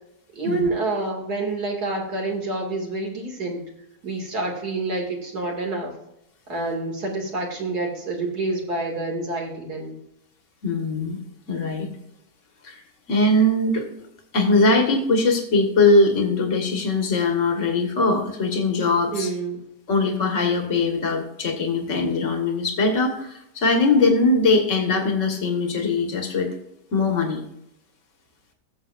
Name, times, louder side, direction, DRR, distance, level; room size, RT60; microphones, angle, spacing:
voice 1, 0.3-3.7 4.0-5.9 6.5-10.0 19.1-19.6, right 3 dB, 65° right, 0 dB, 2.9 m, -28 dB
voice 2, 10.6-11.2 11.5-11.9 12.6-12.8 13.1-13.9 14.3-19.3 19.9-26.5 26.9-27.4, left 2 dB, 45° left, 3 dB, 2.0 m, -21 dB
16.0 x 7.4 x 2.5 m, 0.80 s
omnidirectional pair, 1.8 m